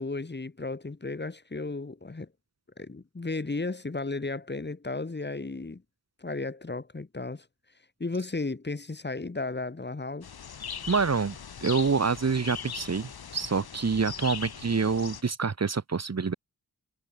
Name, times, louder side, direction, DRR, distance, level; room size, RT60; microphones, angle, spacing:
voice 1, 0.0-2.3 2.8-5.8 6.2-7.5 8.0-10.3, left 3 dB, 30° left, 1.7 m, -34 dB
sound 1, 10.2-15.2, left 7 dB, 80° left, 2.2 m, -40 dB
voice 2, 10.9-11.4 11.6-16.3, right 5 dB, 45° right, 1.3 m, -27 dB
wide cardioid pair, 65°, 37 cm